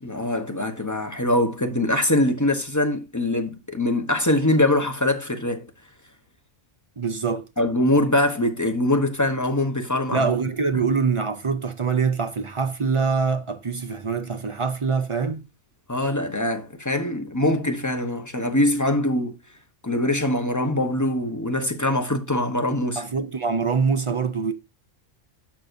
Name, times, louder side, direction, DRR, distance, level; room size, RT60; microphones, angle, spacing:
voice 1, 0.0-5.7 7.6-10.3 15.9-19.3 19.8-23.0, left 1 dB, 15° left, 0.9 m, -23 dB
voice 2, 7.0-7.4 10.1-15.4 23.0-24.5, right 5 dB, 40° right, 0.4 m, -24 dB
11.5 x 6.2 x 2.6 m
omnidirectional pair, 1.3 m